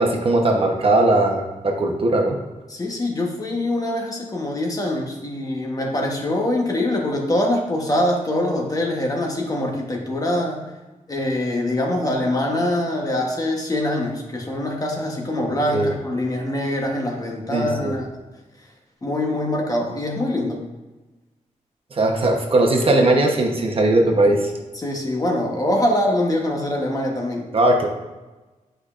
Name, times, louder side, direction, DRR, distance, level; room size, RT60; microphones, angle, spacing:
voice 1, 0.0-2.4 15.7-15.9 17.5-17.9 21.9-24.5 27.5-27.9, right 2 dB, 40° right, 1 dB, 0.9 m, -19 dB
voice 2, 2.7-10.6 11.1-18.1 19.0-20.6 24.8-27.5, left 1 dB, 25° left, 0 dB, 1.0 m, -24 dB
10.5 x 5.1 x 2.5 m, 1.2 s
wide cardioid pair, 165°, 14 cm